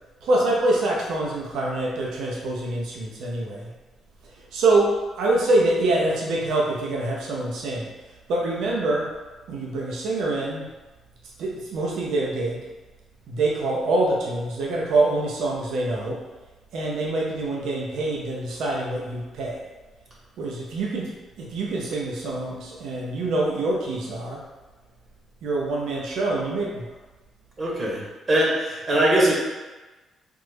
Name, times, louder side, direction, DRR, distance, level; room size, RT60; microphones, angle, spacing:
voice 1, 0.2-3.7 4.2-7.9 8.3-9.1 9.5-10.7 11.4-12.6 13.3-16.2 16.7-19.6 20.4-21.1 21.4-24.4 25.4-26.9, right 2 dB, 80° right, -2 dB, 0.5 m, -25 dB
voice 2, 27.6-29.3, right 1 dB, 40° right, -4 dB, 0.9 m, -21 dB
3.4 x 2.0 x 3.2 m, 1.2 s
cardioid pair, 90°, 0 cm